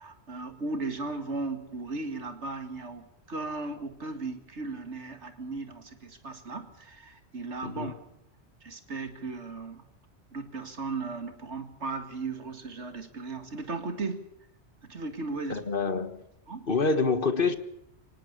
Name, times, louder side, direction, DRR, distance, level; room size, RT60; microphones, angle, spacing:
voice 1, 0.0-8.0 8.6-9.9 10.3-14.2 14.8-15.6 16.5-16.7, right 3 dB, 80° right, 8 dB, 2.4 m, -36 dB
voice 2, 15.5-16.2 16.7-17.5, left 4 dB, 50° left, 11 dB, 1.7 m, -26 dB
25.0 x 18.0 x 6.9 m, 0.77 s
omnidirectional pair, 1.2 m